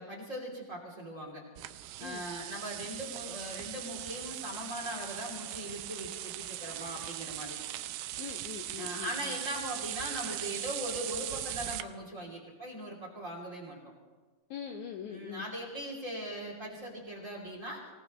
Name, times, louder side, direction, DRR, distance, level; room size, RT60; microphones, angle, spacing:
voice 1, 0.0-1.4 2.0-7.6 8.8-13.8 15.1-17.8, equal, 20° right, -2 dB, 3.0 m, -40 dB
sound 1, 1.6-11.8, right 14 dB, 80° right, 2.3 m, -39 dB
voice 2, 8.2-9.3 14.5-15.4, left 8 dB, 75° left, 4 dB, 1.8 m, -42 dB
25.0 x 18.0 x 3.1 m, 1.4 s
omnidirectional pair, 4.1 m